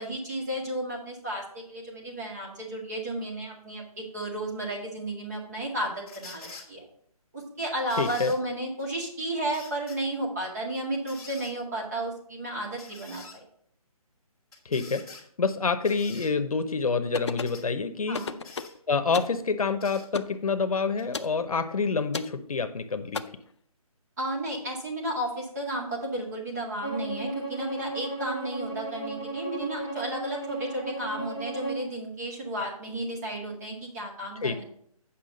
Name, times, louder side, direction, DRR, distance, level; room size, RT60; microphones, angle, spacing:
voice 1, 0.0-6.8 7.3-13.2 18.1-18.4 24.2-34.6, right 1 dB, 25° right, -2 dB, 2.0 m, -33 dB
sound 1, 6.1-6.7 7.9-8.4 9.5-10.0 11.1-11.5 12.8-13.4 14.5-15.2 15.8-16.3 17.5-17.7 18.1-18.7 19.8-20.1 21.0-21.1, left 4 dB, 10° left, 1.3 m, -46 dB
voice 2, 8.0-8.3 14.6-15.1 15.4-18.2 18.9-23.2 34.4-34.6, left 4 dB, 70° left, 9 dB, 0.9 m, -27 dB
sound 2, 17.1-17.6 18.1-18.8 19.1-19.4 20.1-20.4 21.1-21.4 22.1-22.4 23.1-23.2, left 5 dB, 45° left, 0.5 m, -33 dB
Bowed string instrument, 26.8-31.9, right 2 dB, 10° right, 0.5 m, -35 dB
8.4 x 5.8 x 5.2 m, 0.64 s
hypercardioid pair, 175°, 19 cm